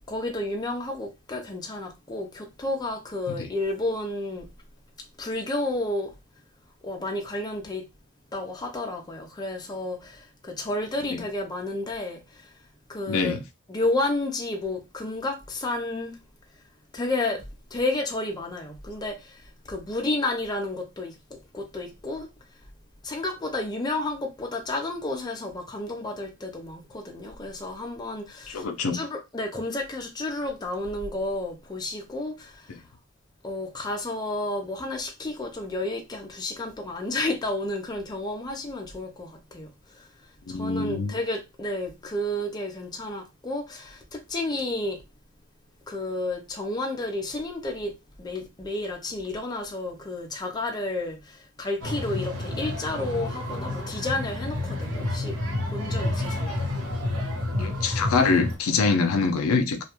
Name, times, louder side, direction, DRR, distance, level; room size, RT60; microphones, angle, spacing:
voice 1, 0.1-4.5 5.2-6.1 6.8-7.9 8.3-12.5 12.9-13.4 13.7-16.2 16.9-22.3 23.0-28.6 28.9-32.8 33.4-40.1 40.5-45.0 45.9-55.4 55.7-56.6, left 2 dB, 20° left, 0.5 m, -31 dB
voice 2, 13.1-13.4 28.5-29.0 32.7-32.8 40.5-41.1 57.6-59.8, left 4 dB, 70° left, 0.5 m, -25 dB
sound 1, 51.8-58.6, left 1 dB, 70° right, 1.0 m, -30 dB
2.3 x 2.2 x 2.9 m
head